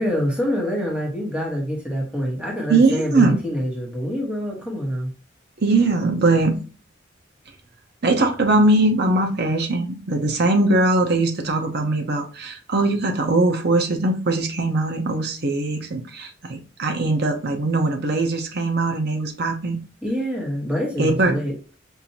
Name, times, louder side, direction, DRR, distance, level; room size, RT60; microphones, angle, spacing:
voice 1, 0.0-5.1 20.0-21.5, equal, 5° right, -2 dB, 1.3 m, -25 dB
voice 2, 2.7-3.4 5.6-6.6 8.0-19.8 21.0-21.3, right 2 dB, 60° right, 4 dB, 0.7 m, -20 dB
5.4 x 2.6 x 2.9 m, 0.35 s
head